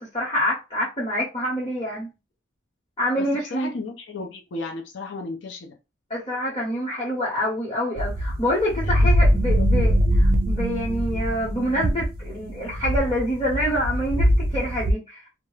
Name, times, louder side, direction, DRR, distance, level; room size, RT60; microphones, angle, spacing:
voice 1, 0.0-2.1 3.0-3.7 6.1-15.2, equal, 25° left, 0.8 m, -26 dB
voice 2, 3.2-5.8 8.8-9.1 9.6-9.7, left 3 dB, 65° left, 0.5 m, -34 dB
sound 1, 8.0-14.9, equal, 45° right, 0.4 m, -22 dB
2.3 x 2.1 x 3.1 m
head